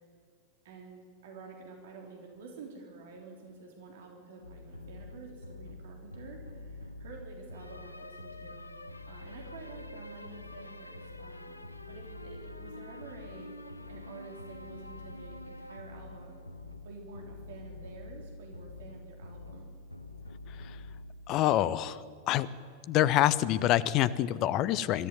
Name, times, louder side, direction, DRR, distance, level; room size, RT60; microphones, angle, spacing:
voice 1, 0.6-8.7 9.1-13.5 13.9-16.4 16.8-19.7, right 3 dB, 55° right, 1 dB, 3.6 m, -49 dB
sound 1, 4.4-22.0, left 2 dB, 85° left, 0.8 m, -46 dB
voice 2, 21.3-22.5 22.9-25.1, left 13 dB, 40° left, 18 dB, 0.8 m, -26 dB
23.5 x 13.5 x 9.3 m, 2.1 s
figure-of-eight pair, 90°, 0 cm